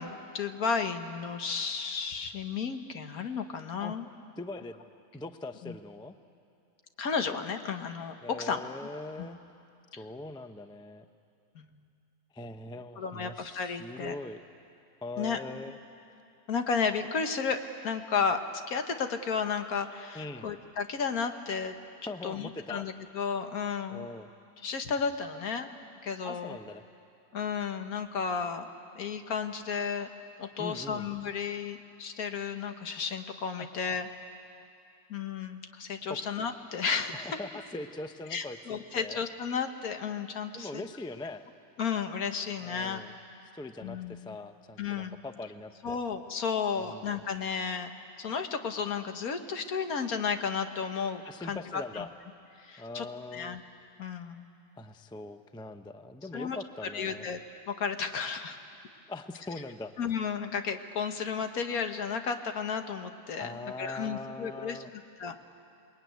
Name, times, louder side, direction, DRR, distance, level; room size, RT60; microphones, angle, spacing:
voice 1, 0.0-4.1 5.6-5.7 7.0-8.6 9.9-10.0 11.5-11.6 13.0-14.1 15.2-15.4 16.5-21.8 22.2-24.0 24.6-25.7 26.0-26.6 27.3-28.7 28.9-30.1 30.4-34.1 35.1-37.4 38.3-40.8 41.8-43.0 43.8-44.2 44.8-45.2 45.8-47.9 48.2-52.0 52.6-53.1 53.3-53.6 54.0-54.5 56.3-56.6 56.9-57.4 57.7-58.6 60.0-64.8 65.2-65.3, left 6 dB, 70° left, 7 dB, 1.7 m, -33 dB
voice 2, 4.4-4.9 5.1-6.2 8.2-9.4 10.0-11.0 12.3-14.4 15.0-15.8 20.1-20.5 22.0-22.9 23.9-24.3 26.2-26.8 30.6-31.1 33.6-33.7 36.1-36.2 37.1-39.2 40.5-41.4 42.6-43.2 43.5-46.0 46.8-47.1 51.2-52.1 52.8-53.6 54.8-57.3 59.1-59.9 63.4-64.9, left 2 dB, 5° left, 8 dB, 0.4 m, -41 dB
27.5 x 20.5 x 9.4 m, 2.6 s
omnidirectional pair, 1.6 m